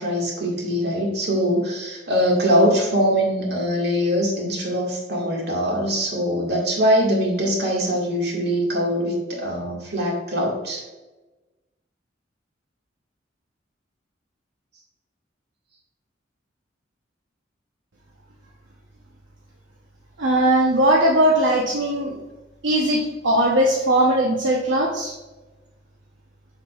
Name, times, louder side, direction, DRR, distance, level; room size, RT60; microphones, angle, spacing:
voice 1, 0.0-10.8, equal, 60° right, -1 dB, 1.9 m, -22 dB
voice 2, 20.2-22.2 22.6-25.1, right 1 dB, 80° right, -2 dB, 0.9 m, -19 dB
7.3 x 6.0 x 2.4 m, 1.1 s
head